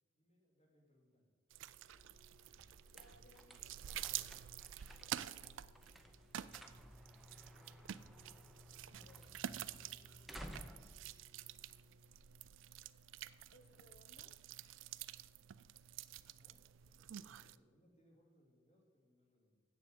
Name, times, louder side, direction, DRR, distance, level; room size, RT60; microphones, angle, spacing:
voice 1, 0.1-1.3 7.3-7.8 16.0-19.6, equal, 30° left, -1 dB, 2.4 m, -73 dB
sound 1, 1.5-17.6, right 11 dB, 65° right, 0.3 m, -49 dB
sound 2, 1.6-12.3, equal, ahead, 0.6 m, -58 dB
voice 2, 2.9-4.5 8.9-9.4 9.8-11.0 13.5-14.4, left 2 dB, 45° left, 9 dB, 0.8 m, -67 dB
8.0 x 7.4 x 7.9 m, 1.5 s
head